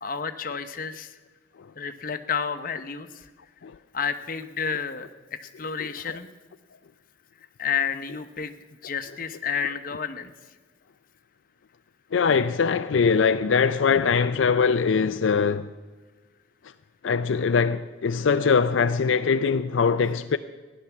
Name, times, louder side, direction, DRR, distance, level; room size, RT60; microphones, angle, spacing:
voice 1, 0.0-1.2 1.7-3.3 3.9-6.3 7.6-10.3, left 6 dB, 45° left, 0.9 m, -31 dB
voice 2, 12.1-15.7 17.0-20.4, left 5 dB, 75° left, 0.4 m, -22 dB
16.0 x 10.5 x 7.1 m
head